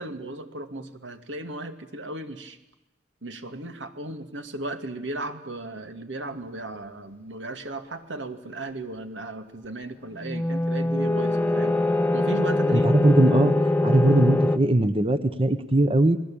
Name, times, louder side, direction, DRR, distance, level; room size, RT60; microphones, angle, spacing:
voice 1, 0.0-2.6 3.2-11.7 12.1-12.9, right 2 dB, 85° right, 8 dB, 2.4 m, -36 dB
sound 1, 10.2-14.6, left 2 dB, 10° left, 1.3 m, -23 dB
voice 2, 12.7-13.5 13.8-16.2, right 1 dB, 30° right, 11 dB, 1.0 m, -20 dB
29.5 x 20.0 x 8.8 m, 0.93 s
head